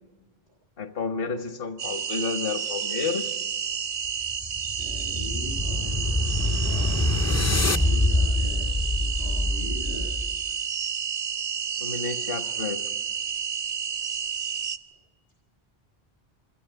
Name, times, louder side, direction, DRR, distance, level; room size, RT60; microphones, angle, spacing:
voice 1, 0.8-3.3 11.8-12.8, left 4 dB, 65° left, 8 dB, 1.4 m, -31 dB
sound 1, 1.8-14.8, right 7 dB, 70° right, 1.1 m, -31 dB
sound 2, 4.1-10.4, left 2 dB, 20° left, 0.5 m, -25 dB
voice 2, 4.8-7.0 7.8-10.3 11.9-12.2, equal, 80° left, -1 dB, 7.7 m, -41 dB
25.0 x 14.0 x 8.0 m, 1.2 s
omnidirectional pair, 1.1 m